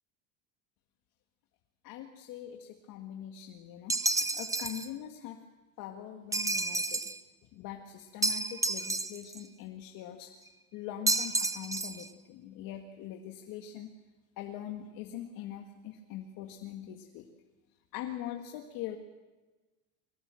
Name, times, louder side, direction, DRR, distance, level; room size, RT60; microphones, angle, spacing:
voice 1, 1.8-5.4 5.8-7.1 7.5-10.3 10.7-13.9 14.4-17.3 17.9-19.0, left 11 dB, 60° left, 3 dB, 1.9 m, -42 dB
sound 1, 3.9-4.9 6.3-7.2 8.2-9.4 11.1-12.1, right 2 dB, 10° right, 0.8 m, -30 dB
22.5 x 18.5 x 7.7 m, 1.2 s
supercardioid pair, 120°, 37 cm